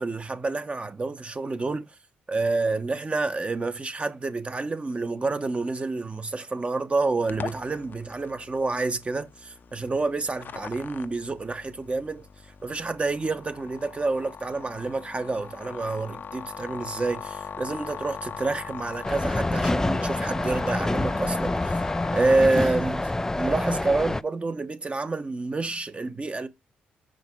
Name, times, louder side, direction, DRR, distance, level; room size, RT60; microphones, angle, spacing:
voice 1, 0.0-1.9 2.3-12.3 12.6-21.8 22.1-23.1 23.4-26.5, right 3 dB, 30° right, 1.1 m, -28 dB
sound 1, 7.3-22.4, left 6 dB, 55° left, 0.7 m, -40 dB
sound 2, 19.0-24.2, left 2 dB, 15° left, 0.3 m, -27 dB
5.9 x 5.2 x 3.7 m
supercardioid pair, 55°, 4 cm